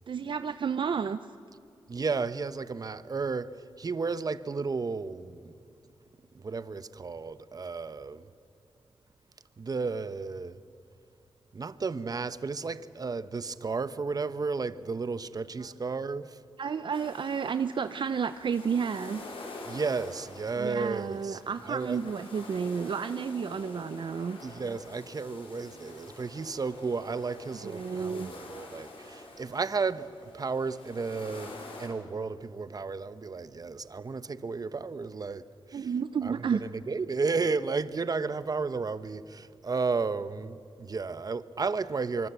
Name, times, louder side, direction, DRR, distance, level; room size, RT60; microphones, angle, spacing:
voice 1, 0.1-1.3 16.6-19.2 20.6-24.4 27.6-28.3 35.7-36.6, right 6 dB, 60° right, 0.6 m, -31 dB
voice 2, 1.9-3.5 3.8-5.5 6.3-8.2 9.6-10.6 11.5-16.4 19.7-21.4 21.7-22.0 24.4-35.4 35.7-35.9 36.2-36.5 36.9-42.3, right 4 dB, 45° right, 1.0 m, -33 dB
sound 1, 16.9-31.9, left 2 dB, 90° left, 5.0 m, -47 dB
25.0 x 24.0 x 8.2 m
cardioid pair, 80°, 9 cm